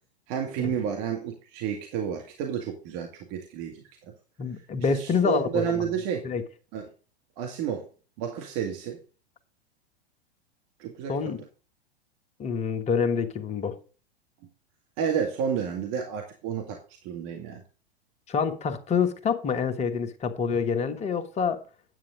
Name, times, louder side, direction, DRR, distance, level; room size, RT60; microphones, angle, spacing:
voice 1, 0.3-4.1 4.9-6.2 6.7-6.8 7.4-7.9 8.2-9.0 10.8-11.1 15.0-17.6, right 8 dB, 40° right, 2.0 m, -31 dB
voice 2, 4.4-5.9 6.2-6.4 11.1-11.4 12.4-13.8 18.3-21.6, left 6 dB, 20° left, 1.2 m, -27 dB
9.6 x 8.8 x 3.8 m
figure-of-eight pair, 95°, 32 cm